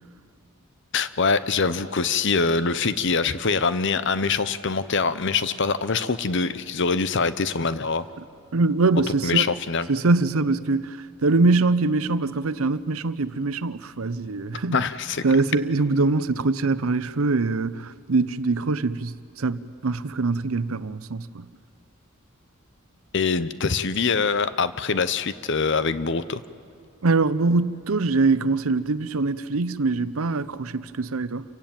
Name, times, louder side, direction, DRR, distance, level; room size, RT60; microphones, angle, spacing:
voice 1, 0.9-8.1 9.2-9.9 14.7-15.2 23.1-26.4, left 4 dB, 55° left, 0.8 m, -24 dB
voice 2, 8.5-9.4 9.9-14.9 15.2-21.5 27.0-31.4, right 3 dB, 80° right, 0.7 m, -23 dB
28.0 x 16.5 x 8.9 m
head